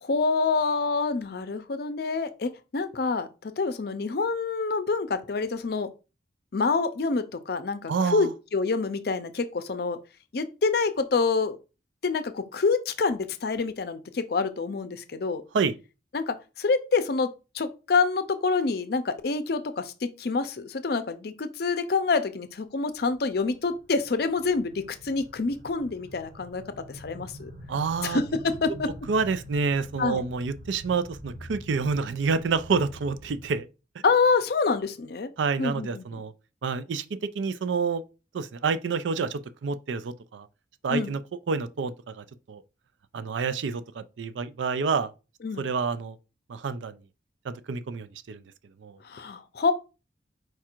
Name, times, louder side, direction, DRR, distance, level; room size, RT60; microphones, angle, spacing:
voice 1, 0.0-5.9 6.5-10.0 10.3-11.6 12.0-15.4 16.1-26.6 26.9-27.5 28.0-28.9 30.0-30.3 34.0-35.3 35.6-36.2 40.9-41.1 45.4-45.7 49.1-49.7, left 4 dB, 55° left, 0.5 m, -27 dB
voice 2, 7.9-8.3 15.5-15.8 27.7-28.2 29.1-33.7 35.4-36.3 36.6-37.0 37.3-38.0 38.3-40.5 40.8-41.2 41.5-42.6 43.1-45.1 45.6-46.2 46.5-47.0 47.4-48.4 48.8-49.0, right 5 dB, 85° right, 0.4 m, -28 dB
sound 1, 22.7-33.6, right 1 dB, 50° right, 0.9 m, -46 dB
4.6 x 2.4 x 4.4 m
head